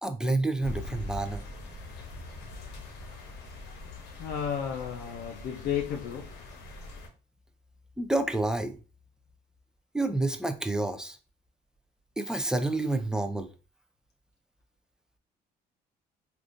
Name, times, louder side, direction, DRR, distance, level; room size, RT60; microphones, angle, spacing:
voice 1, 0.0-1.4 8.0-8.8 9.9-11.2 12.2-13.5, right 2 dB, 5° right, 0.3 m, -29 dB
sound 1, 0.6-7.1, left 2 dB, 90° left, 0.9 m, -42 dB
voice 2, 4.2-6.3, left 8 dB, 65° left, 0.5 m, -33 dB
3.5 x 2.4 x 2.5 m
cardioid pair, 110°, 17 cm